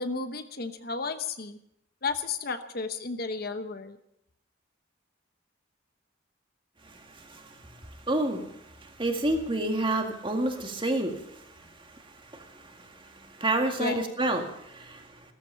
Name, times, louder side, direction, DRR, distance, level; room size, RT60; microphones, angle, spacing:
voice 1, 0.0-1.6 2.0-4.0 13.8-14.0, left 4 dB, 50° left, 9 dB, 1.0 m, -33 dB
voice 2, 6.8-15.3, right 1 dB, 25° right, 4 dB, 2.0 m, -31 dB
15.5 x 14.0 x 5.7 m, 0.77 s
head